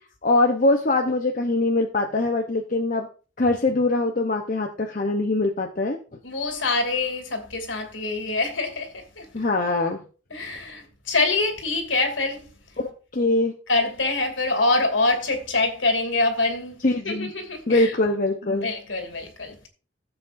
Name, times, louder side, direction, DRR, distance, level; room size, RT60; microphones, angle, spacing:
voice 1, 0.2-3.1 3.4-6.0 9.3-10.0 12.8-13.5 16.8-17.3 17.7-18.7, left 2 dB, 40° left, 0.9 m, -22 dB
voice 2, 6.2-9.4 10.3-12.4 13.7-17.9 18.4-19.7, left 3 dB, 70° left, 2.8 m, -25 dB
15.5 x 7.8 x 2.6 m
head